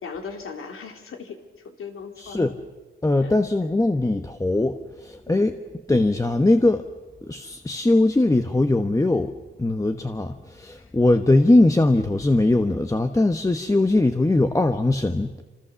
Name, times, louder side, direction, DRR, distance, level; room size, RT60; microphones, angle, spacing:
voice 1, 0.0-2.5 3.2-3.4 5.3-5.5 10.8-10.9, left 5 dB, 85° left, 4 dB, 3.3 m, -38 dB
voice 2, 3.0-4.8 5.0-5.5 5.9-6.8 7.3-9.3 9.6-15.3, left 2 dB, 15° left, 7 dB, 1.1 m, -20 dB
27.5 x 27.0 x 7.0 m, 1.2 s
wide cardioid pair, 110°, 21 cm